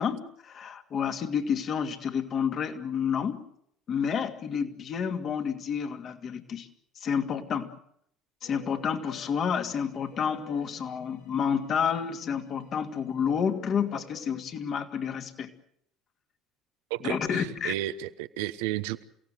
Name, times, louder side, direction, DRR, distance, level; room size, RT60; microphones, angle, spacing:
voice 1, 0.0-3.5 3.9-6.7 7.0-7.7 8.4-15.5 17.0-17.7, left 7 dB, 45° left, 6 dB, 2.6 m, -30 dB
sound 1, 8.4-14.4, left 6 dB, 80° left, 3.7 m, -52 dB
voice 2, 16.9-19.0, right 15 dB, 70° right, 13 dB, 1.0 m, -33 dB
28.5 x 17.5 x 7.8 m, 0.72 s
hypercardioid pair, 65°, 0 cm